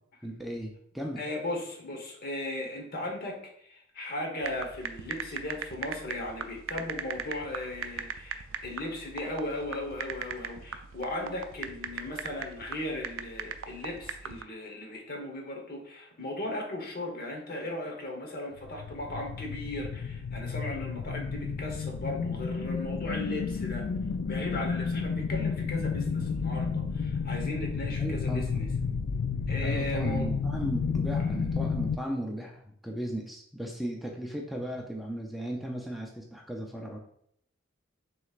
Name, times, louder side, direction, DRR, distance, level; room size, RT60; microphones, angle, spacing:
voice 1, 0.2-1.2 28.0-28.5 29.6-37.0, right 1 dB, ahead, 0 dB, 0.4 m, -36 dB
voice 2, 1.2-23.9 24.3-28.7 29.5-30.3, left 1 dB, 50° left, 1 dB, 1.1 m, -37 dB
sound 1, 4.4-14.4, right 7 dB, 80° right, 0.4 m, -38 dB
sound 2, 18.7-32.0, left 5 dB, 90° left, 0.4 m, -31 dB
6.1 x 3.1 x 2.4 m, 0.68 s
head